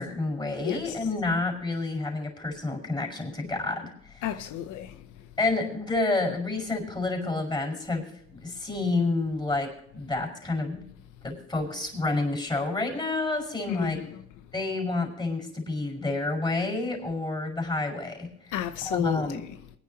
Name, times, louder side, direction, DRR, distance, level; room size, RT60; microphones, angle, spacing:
voice 1, 0.0-4.2 5.4-10.8 11.2-14.0 14.5-18.3 18.8-19.4, left 3 dB, 15° left, 5.3 m, -29 dB
voice 2, 0.6-1.0 4.2-5.3 13.7-14.2 18.5-19.6, left 11 dB, 85° left, 0.8 m, -33 dB
23.5 x 9.8 x 2.9 m
cardioid pair, 90°, 30 cm